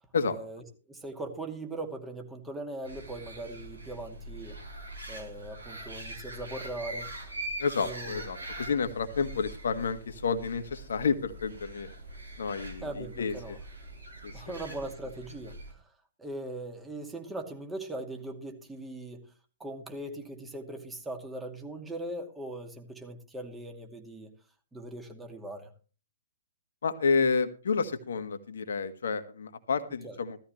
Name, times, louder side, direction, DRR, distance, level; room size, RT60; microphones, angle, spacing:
voice 1, 0.2-0.6 0.9-4.6 5.1-7.1 7.8-8.3 12.8-13.6 14.3-15.8 16.2-19.2 19.6-24.3 24.7-25.7 30.0-30.2, right 1 dB, 10° right, 3 dB, 2.3 m, -40 dB
sound 1, 2.8-15.7, right 1 dB, 80° right, 4.3 m, -43 dB
voice 2, 7.6-11.9 12.4-13.6 14.2-14.6 26.8-30.4, left 5 dB, 65° left, 10 dB, 1.5 m, -30 dB
16.0 x 13.5 x 3.2 m, 0.37 s
figure-of-eight pair, 120°, 0 cm